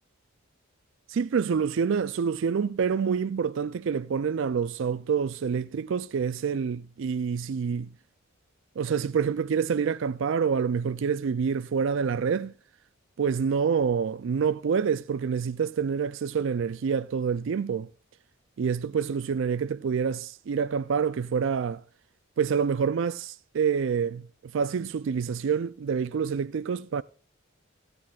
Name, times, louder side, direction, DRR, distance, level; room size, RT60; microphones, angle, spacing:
voice 1, 1.1-7.9 8.8-12.5 13.2-17.9 18.6-21.8 22.4-24.2 24.5-27.0, right 6 dB, 60° right, 0.4 m, -27 dB
16.0 x 9.6 x 2.4 m
head